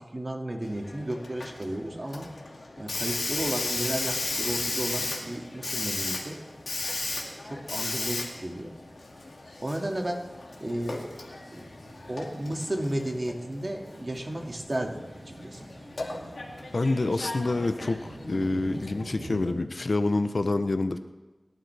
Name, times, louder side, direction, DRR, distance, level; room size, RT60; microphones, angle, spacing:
voice 1, 0.0-2.3 2.8-6.4 7.4-8.8 9.2-9.3 9.6-10.3 10.6-11.1 11.5-11.6 12.1-15.0 15.4-15.7, right 1 dB, 40° right, 2 dB, 2.2 m, -33 dB
Hiss, 0.6-19.0, left 2 dB, 85° left, 2.3 m, -36 dB
sound 1, 3.1-19.5, right 1 dB, 75° right, 2.8 m, -47 dB
voice 2, 16.7-21.0, left 2 dB, 65° left, 9 dB, 0.8 m, -27 dB
26.5 x 12.5 x 3.5 m, 1.2 s
wide cardioid pair, 50°, 0 cm